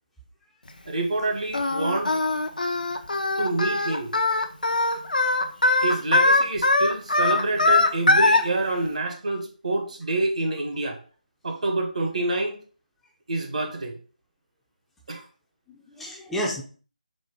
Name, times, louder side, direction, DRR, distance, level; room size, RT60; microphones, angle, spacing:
voice 1, 0.9-2.2 3.4-4.2 5.8-11.0 11.4-12.6 13.3-14.0 15.1-15.2, right 2 dB, 55° right, 0.8 m, -27 dB
Singing, 1.5-8.4, left 2 dB, 75° left, 0.6 m, -21 dB
voice 2, 5.5-5.8 15.7-16.6, equal, 5° left, 0.4 m, -32 dB
4.2 x 2.2 x 4.5 m
figure-of-eight pair, 155°, 5 cm